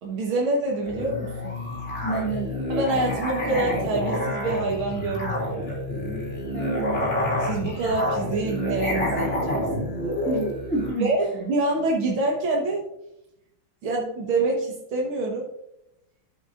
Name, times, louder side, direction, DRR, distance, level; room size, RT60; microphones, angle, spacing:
voice 1, 0.0-1.6 2.7-5.8 7.4-10.3 11.0-12.8 13.8-15.5, right 2 dB, 90° right, -1 dB, 2.2 m, -26 dB
Musical instrument, 0.8-11.0, left 1 dB, 30° left, 2.3 m, -28 dB
voice 2, 2.0-2.6 6.5-7.1 10.3-11.1, right 3 dB, 5° left, -3 dB, 1.9 m, -29 dB
12.5 x 5.9 x 2.5 m, 0.83 s
omnidirectional pair, 2.2 m